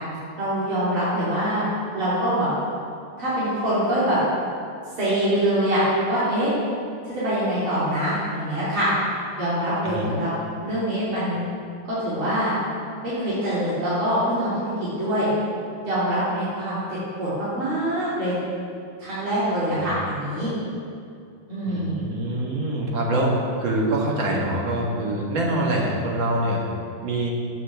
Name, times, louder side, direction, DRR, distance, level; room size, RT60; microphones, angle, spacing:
voice 1, 0.4-1.7 1.9-2.5 3.2-4.2 5.0-6.5 7.0-8.9 9.4-10.3 10.6-11.4 11.9-12.5 13.0-15.3 15.9-16.8 17.2-18.4 19.0-20.5 21.5-22.0, right 1 dB, 80° right, -11 dB, 3.7 m, -24 dB
voice 2, 21.7-23.3 23.6-26.6 27.0-27.3, right 1 dB, 65° right, -3 dB, 2.4 m, -25 dB
15.0 x 8.5 x 3.6 m, 2.4 s
omnidirectional pair, 2.3 m